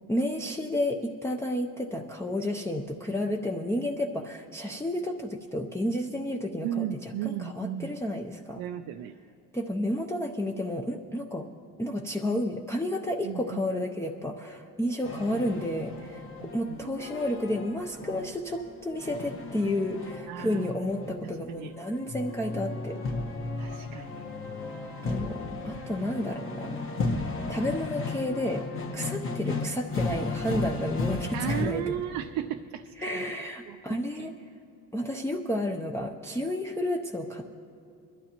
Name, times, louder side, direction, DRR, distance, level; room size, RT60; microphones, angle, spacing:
voice 1, 0.1-8.6 9.5-11.4 11.8-23.0 25.0-25.4 25.6-26.8 27.5-28.7 28.9-31.9 33.0-34.3 34.9-37.5, left 1 dB, 10° left, -1 dB, 0.6 m, -31 dB
voice 2, 6.6-7.9 8.6-9.1 13.2-13.6 16.4-16.9 20.3-20.7 21.1-21.7 23.6-24.3 31.3-33.3 33.7-33.8 34.2-34.3, right 11 dB, 80° right, 7 dB, 0.5 m, -35 dB
sound 1, 15.0-31.6, left 3 dB, 40° left, 1.4 m, -34 dB
22.0 x 12.0 x 3.0 m, 2.5 s
cardioid pair, 110°, 34 cm